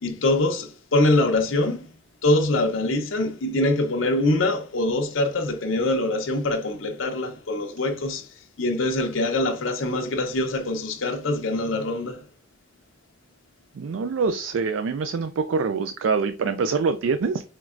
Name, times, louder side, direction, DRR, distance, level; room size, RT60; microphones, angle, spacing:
voice 1, 0.0-1.9 2.2-8.3 8.6-12.2, left 2 dB, 85° left, 0.7 m, -24 dB
voice 2, 13.8-17.4, right 5 dB, 70° right, 0.3 m, -25 dB
4.6 x 3.1 x 2.4 m
head